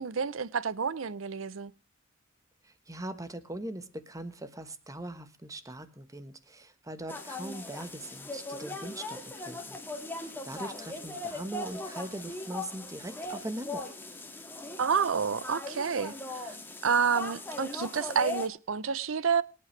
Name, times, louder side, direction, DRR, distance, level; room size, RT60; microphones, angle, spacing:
voice 1, 0.0-1.7 14.8-16.5 16.8-19.4, right 6 dB, 85° right, 0.6 m, -29 dB
voice 2, 2.6-9.8 10.2-13.8, right 1 dB, 15° right, 1.3 m, -41 dB
sound 1, 7.1-18.5, left 2 dB, 10° left, 2.0 m, -39 dB
24.5 x 8.8 x 3.3 m
head